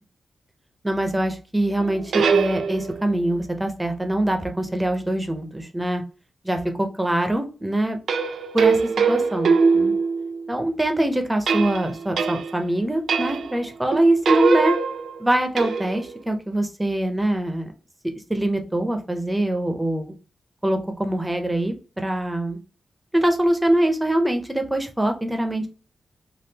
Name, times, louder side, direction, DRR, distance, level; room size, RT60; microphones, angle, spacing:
voice 1, 0.8-6.0 6.4-8.0 8.5-8.8 9.1-9.9 10.5-14.8 15.2-17.7 18.3-20.1 20.6-22.6 23.1-25.7, right 1 dB, 10° right, 5 dB, 0.5 m, -23 dB
sound 1, 1.8-3.1 8.1-10.5 11.5-12.7 13.1-13.6 13.9-16.2, right 5 dB, 80° right, 0.4 m, -22 dB
3.4 x 2.4 x 2.8 m, 0.34 s
wide cardioid pair, 150°, 0 cm